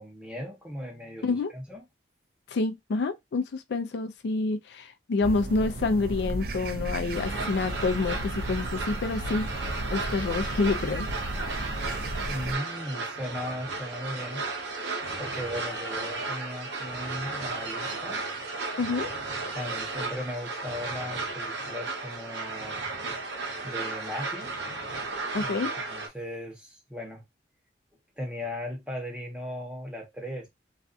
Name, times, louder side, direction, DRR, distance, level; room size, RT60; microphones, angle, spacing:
voice 1, 0.0-1.8 12.3-14.4 15.2-18.2 19.5-22.9 23.6-24.6 25.4-27.2 28.2-30.5, left 1 dB, 5° right, 0.8 m, -37 dB
voice 2, 2.5-9.5 9.9-11.1 18.8-19.1 25.3-25.7, left 3 dB, 70° left, 0.4 m, -28 dB
sound 1, 5.2-12.6, right 1 dB, 55° right, 0.4 m, -34 dB
sound 2, 7.1-26.1, right 3 dB, 85° right, 0.7 m, -34 dB
2.4 x 2.3 x 2.5 m
head